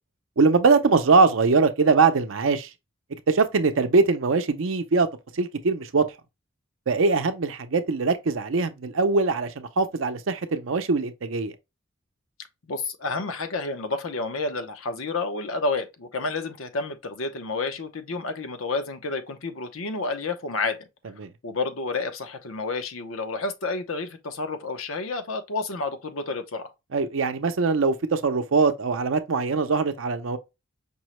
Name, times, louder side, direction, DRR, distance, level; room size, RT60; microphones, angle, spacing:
voice 1, 0.4-2.7 3.3-5.1 5.3-6.1 6.9-11.5 21.2-21.3 26.9-30.4, right 4 dB, 70° right, 0.6 m, -22 dB
voice 2, 12.7-20.9 21.4-26.7, left 3 dB, 85° left, 0.7 m, -30 dB
5.3 x 2.1 x 2.9 m
head